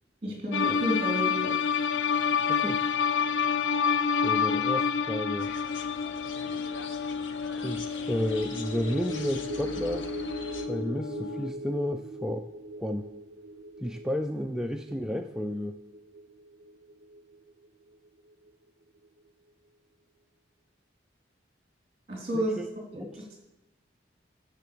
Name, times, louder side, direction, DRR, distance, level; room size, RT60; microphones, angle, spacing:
voice 1, 0.2-1.5 22.1-22.6 22.9-23.4, equal, 30° right, -2 dB, 3.2 m, -31 dB
sound 1, 0.5-11.5, left 6 dB, 70° left, 0.5 m, -29 dB
voice 2, 2.5-2.8 4.1-5.5 7.6-10.1 10.7-12.5 12.8-13.1 13.8-15.8 22.3-22.7 23.0-23.4, equal, 5° right, 5 dB, 0.3 m, -32 dB
sound 2, 5.4-10.7, left 3 dB, 90° left, 1.0 m, -43 dB
sound 3, 8.1-18.7 19.0-19.2, right 2 dB, 55° right, 0.6 m, -41 dB
10.0 x 6.6 x 7.0 m, 0.92 s
head